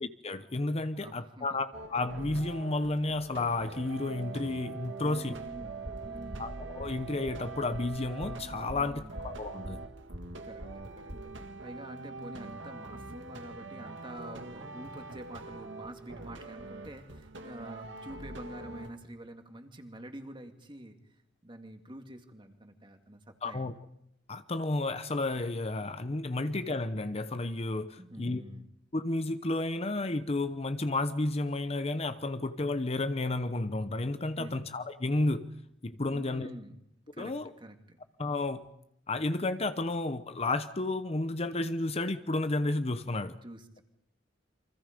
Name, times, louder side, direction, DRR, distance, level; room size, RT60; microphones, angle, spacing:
voice 1, 0.0-5.4 6.4-9.8 23.4-23.7 24.3-28.4 28.9-35.5 35.8-36.5 37.2-37.5 38.2-38.7 39.1-43.4, left 2 dB, 35° left, 11 dB, 0.8 m, -32 dB
voice 2, 1.0-1.6 5.0-6.5 8.7-9.2 10.4-21.0 21.4-23.7 26.4-26.5 28.0-28.6 34.4-34.7 36.1-36.8 37.1-38.1 43.4-43.8, right 1 dB, 25° right, 5 dB, 2.2 m, -47 dB
sound 1, 1.7-18.9, right 3 dB, 75° right, 1.9 m, -44 dB
sound 2, 5.5-11.4, equal, 50° right, 2.7 m, -45 dB
29.0 x 24.5 x 5.2 m, 0.77 s
head